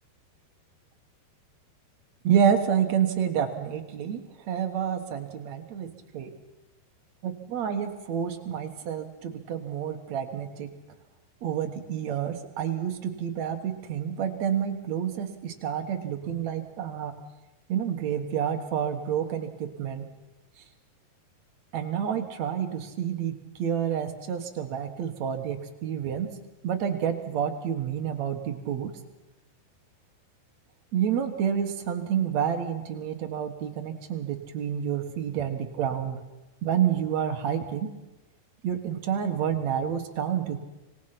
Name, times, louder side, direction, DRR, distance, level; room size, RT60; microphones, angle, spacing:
voice 1, 2.2-4.2 4.5-6.3 7.2-10.7 11.4-17.1 17.7-20.1 21.7-26.3 26.6-28.9 30.9-36.2 36.6-37.9 38.6-40.6, right 8 dB, 60° right, 6 dB, 2.0 m, -29 dB
25.5 x 20.0 x 5.9 m, 1.0 s
omnidirectional pair, 4.8 m